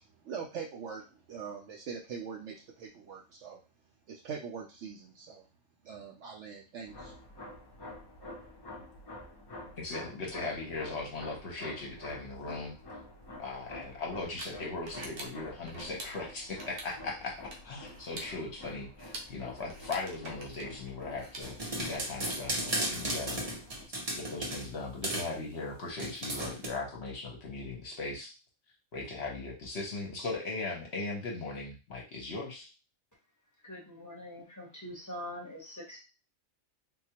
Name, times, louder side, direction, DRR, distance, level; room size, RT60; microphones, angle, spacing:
voice 1, 0.2-3.6 4.1-5.5 5.8-7.1, right 6 dB, 65° right, 1 dB, 0.8 m, -42 dB
sound 1, 6.9-23.8, left 1 dB, 30° left, 0.4 m, -48 dB
voice 2, 9.8-12.8 13.4-23.4 24.2-28.3 28.9-32.7, left 3 dB, 55° left, -1 dB, 1.0 m, -38 dB
sound 2, 13.3-22.0, right 2 dB, 85° right, 1.2 m, -48 dB
sound 3, 21.4-24.7 25.0-25.3 26.0-26.7, right 1 dB, 35° right, 0.6 m, -34 dB
voice 3, 33.7-36.0, equal, 15° left, -3 dB, 0.8 m, -43 dB
3.7 x 2.3 x 2.8 m, 0.30 s
omnidirectional pair, 1.5 m